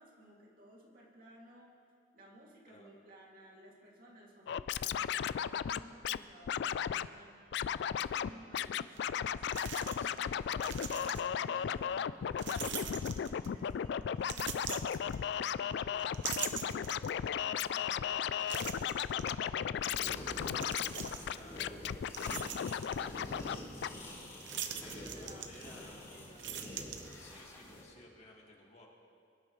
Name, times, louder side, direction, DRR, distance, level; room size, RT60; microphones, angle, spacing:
voice 1, 0.0-1.8 2.1-7.4 8.0-21.8 22.5-24.1 25.0-25.6 25.8-26.6, equal, 50° right, -3 dB, 2.5 m, -57 dB
Scratching (performance technique), 4.5-6.2 6.5-7.1 7.5-8.3 8.5-23.6 23.8-23.9, left 8 dB, 65° left, 0.3 m, -35 dB
sound 1, 9.0-9.1 9.5-10.2 10.5-11.5 12.4-13.6 14.2-15.6 16.0-17.3 17.8-17.9 18.5-19.3 20.5-21.4 21.9-23.0 24.4-25.9 26.2-27.5, right 8 dB, 80° right, 0.8 m, -42 dB
voice 2, 10.0-10.4 21.3-21.8 24.6-26.1 27.2-28.9, left 2 dB, 40° left, -1 dB, 1.9 m, -57 dB
sound 2, 19.8-27.8, left 1 dB, 20° left, 3.5 m, -47 dB
23.0 x 12.0 x 3.2 m, 2.3 s
head